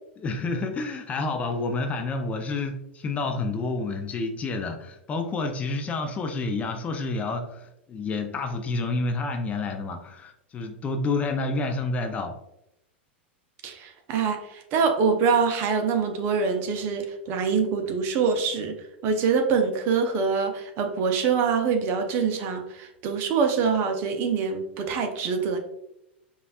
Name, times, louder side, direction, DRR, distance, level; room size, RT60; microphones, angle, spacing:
voice 1, 0.2-12.4, left 3 dB, 20° left, 4 dB, 0.4 m, -29 dB
voice 2, 13.6-18.8 19.0-25.6, right 5 dB, 40° right, 5 dB, 0.5 m, -25 dB
5.1 x 2.4 x 2.3 m, 0.83 s
figure-of-eight pair, 90°, 6 cm